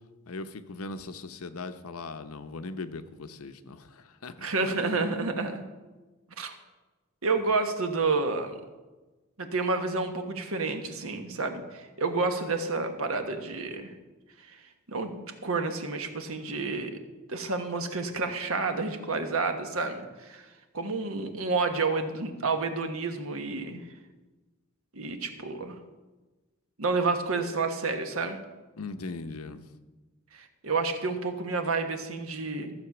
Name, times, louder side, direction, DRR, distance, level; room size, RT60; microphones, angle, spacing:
voice 1, 0.3-4.5 28.8-29.7, left 3 dB, 85° left, 10 dB, 0.8 m, -39 dB
voice 2, 4.4-5.6 6.4-6.5 7.2-8.5 9.4-13.9 14.5-14.6 14.9-17.0 17.3-20.5 20.7-23.8 24.9-25.8 26.8-28.4 30.3-32.7, right 3 dB, 75° right, 7 dB, 1.3 m, -30 dB
14.5 x 7.0 x 6.0 m, 1.2 s
head